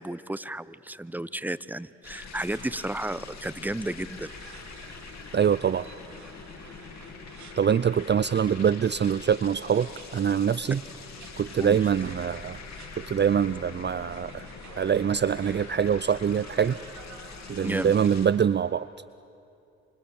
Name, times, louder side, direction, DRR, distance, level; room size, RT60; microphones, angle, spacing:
voice 1, 0.0-4.3 11.5-11.8 17.6-17.9, right 1 dB, 5° right, 16 dB, 1.0 m, -32 dB
sound 1, 2.0-18.3, left 5 dB, 60° left, 2.7 m, -44 dB
sound 2, 2.5-18.4, right 5 dB, 65° right, 3.4 m, -51 dB
sound 3, 3.4-17.8, right 3 dB, 85° right, 6.5 m, -59 dB
voice 2, 5.3-5.9 7.6-10.8 11.4-12.6 13.0-14.5 14.8-16.8 17.5-18.9, right 8 dB, 35° right, 16 dB, 0.6 m, -24 dB
28.5 x 26.5 x 7.1 m, 2.7 s
hypercardioid pair, 45°, 30 cm